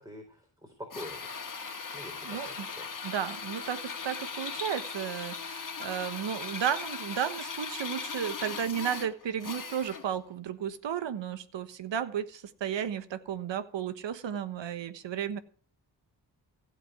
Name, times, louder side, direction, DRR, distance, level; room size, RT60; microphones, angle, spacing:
voice 1, 0.0-1.4 1.9-2.9, left 1 dB, 10° right, 2 dB, 4.1 m, -45 dB
Drill, 0.9-10.2, left 5 dB, 45° left, 2.0 m, -39 dB
voice 2, 2.2-2.7 3.0-15.4, right 9 dB, 70° right, 13 dB, 1.3 m, -33 dB
16.0 x 5.3 x 9.1 m, 0.43 s
cardioid pair, 65°, 45 cm